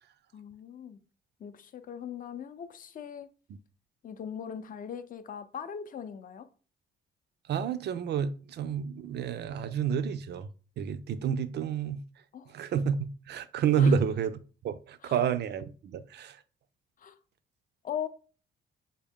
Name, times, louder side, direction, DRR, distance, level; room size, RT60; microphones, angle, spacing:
voice 1, 0.3-1.0 1.4-3.3 4.0-6.5 12.3-12.5 13.8-14.0 15.0-15.2 17.0-17.2 17.8-18.1, left 8 dB, 45° left, 0.5 m, -39 dB
voice 2, 7.5-10.5 10.8-12.0 12.5-14.4 14.6-16.4, right 7 dB, 55° right, 0.4 m, -29 dB
3.6 x 2.1 x 3.6 m
cardioid pair, 90°, 20 cm